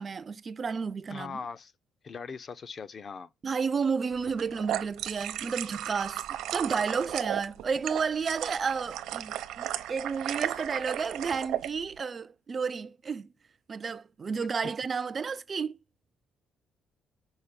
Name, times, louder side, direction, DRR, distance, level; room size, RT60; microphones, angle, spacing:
voice 1, 0.0-1.4 3.4-6.2 6.5-13.3 13.7-15.8, right 5 dB, 25° right, 0.3 m, -32 dB
voice 2, 1.1-1.7 2.0-3.3, left 5 dB, 30° left, 0.4 m, -40 dB
sound 1, 4.3-11.7, right 12 dB, 75° right, 0.6 m, -35 dB
5.6 x 4.7 x 5.1 m
cardioid pair, 160°, 0 cm